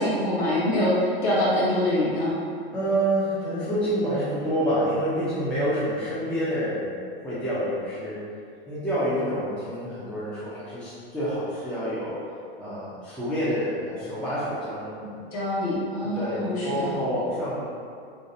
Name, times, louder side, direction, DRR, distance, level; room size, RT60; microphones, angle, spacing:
voice 1, 0.0-2.3 15.3-16.9, left 1 dB, 40° left, -7 dB, 0.9 m, -24 dB
voice 2, 2.7-6.9 7.2-8.2 8.7-12.2 12.6-15.2 16.0-17.7, equal, 5° left, -11 dB, 0.3 m, -28 dB
2.5 x 2.0 x 2.5 m, 2.3 s
hypercardioid pair, 120°, 31 cm